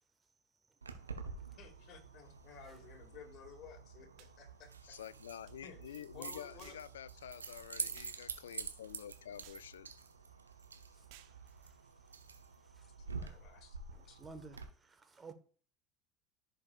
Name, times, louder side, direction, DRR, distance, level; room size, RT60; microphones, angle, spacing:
Keys jangling, 0.8-14.6, right 5 dB, 90° right, 0.8 m, -48 dB
voice 1, 1.6-4.7 5.6-6.8 13.2-13.8 14.1-14.2, left 6 dB, 50° left, 2.2 m, -55 dB
sound 1, 4.2-4.4 5.4-5.6 6.6-6.9 7.9-8.2 9.4-9.7 11.1-11.4, right 11 dB, 65° right, 0.9 m, -58 dB
voice 2, 4.8-9.9, left 10 dB, 80° left, 0.3 m, -49 dB
voice 3, 10.9-11.8 12.6-12.9 13.9-15.3, right 4 dB, 20° right, 1.3 m, -55 dB
14.5 x 5.2 x 2.4 m
hypercardioid pair, 70°, 0 cm